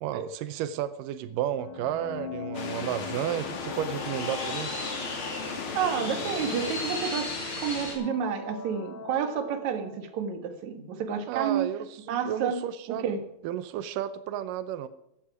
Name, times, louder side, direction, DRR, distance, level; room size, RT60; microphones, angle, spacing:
voice 1, 0.0-4.7 11.3-12.0 12.3-13.0 13.4-14.9, right 10 dB, 85° right, 13 dB, 1.9 m, -32 dB
sound 1, 1.6-10.2, left 6 dB, 65° left, 2.7 m, -42 dB
sound 2, 2.5-7.7, left 5 dB, 50° left, 1.6 m, -37 dB
sound 3, 2.8-7.9, left 2 dB, 30° left, 5.1 m, -37 dB
voice 2, 5.7-11.7 12.1-12.6 12.9-13.2, right 7 dB, 55° right, 8 dB, 2.3 m, -30 dB
15.0 x 11.5 x 5.0 m, 0.80 s
omnidirectional pair, 4.7 m